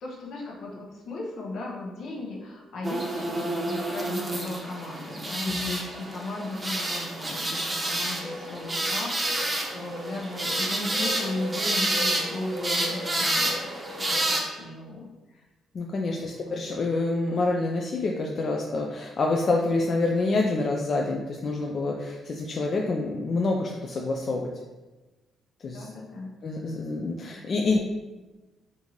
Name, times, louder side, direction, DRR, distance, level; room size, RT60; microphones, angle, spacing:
voice 1, 0.0-13.7 14.0-15.4 16.2-16.5 25.7-26.3, left 2 dB, 70° left, -2 dB, 0.8 m, -37 dB
sound 1, 2.8-14.4, right 1 dB, 25° right, 0.6 m, -29 dB
voice 2, 5.4-5.8 15.7-24.5 25.6-25.9 26.4-27.8, left 3 dB, 50° left, 0 dB, 0.3 m, -27 dB
3.6 x 2.6 x 3.0 m, 1.2 s
cardioid pair, 90°, 0 cm